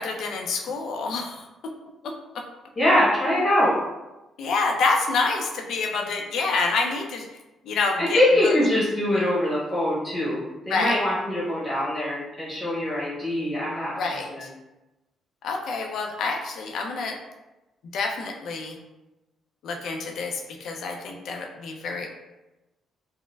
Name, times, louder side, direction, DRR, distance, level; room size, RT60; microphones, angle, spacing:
voice 1, 0.0-1.4 4.4-7.2 7.7-8.5 10.7-11.0 14.0-14.3 15.4-17.2 17.9-18.8 19.6-22.1, left 4 dB, 70° left, 2 dB, 0.4 m, -27 dB
voice 2, 2.7-3.7 8.0-14.5, left 1 dB, 25° left, -8 dB, 1.0 m, -23 dB
3.9 x 2.1 x 2.3 m, 1.0 s
cardioid pair, 90°, 0 cm